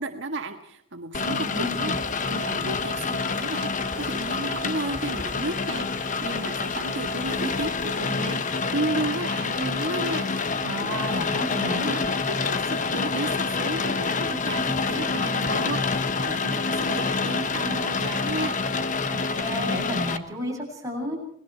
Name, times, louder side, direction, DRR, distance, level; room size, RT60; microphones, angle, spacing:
voice 1, 0.0-1.9 2.2-18.6, right 2 dB, 65° right, 5 dB, 1.6 m, -33 dB
Rain, 1.1-20.2, left 4 dB, 40° left, 1.2 m, -27 dB
voice 2, 1.3-2.0 10.6-12.0 19.1-21.2, equal, 15° right, -1 dB, 7.8 m, -32 dB
28.5 x 19.5 x 4.6 m, 0.65 s
head